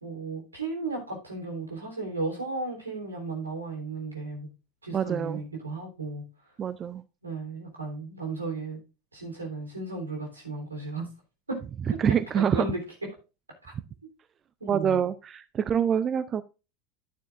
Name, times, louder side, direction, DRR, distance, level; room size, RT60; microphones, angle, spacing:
voice 1, 0.0-4.5 4.8-6.3 7.2-8.8 9.1-11.1 11.5-11.6 12.1-12.8 13.6-13.7 14.6-15.1, right 3 dB, 80° right, 1 dB, 3.6 m, -35 dB
voice 2, 4.9-5.4 6.6-7.0 12.0-12.7 14.7-16.4, right 8 dB, 30° right, 15 dB, 0.5 m, -26 dB
11.5 x 9.2 x 2.6 m, 0.31 s
figure-of-eight pair, 80°, 0 cm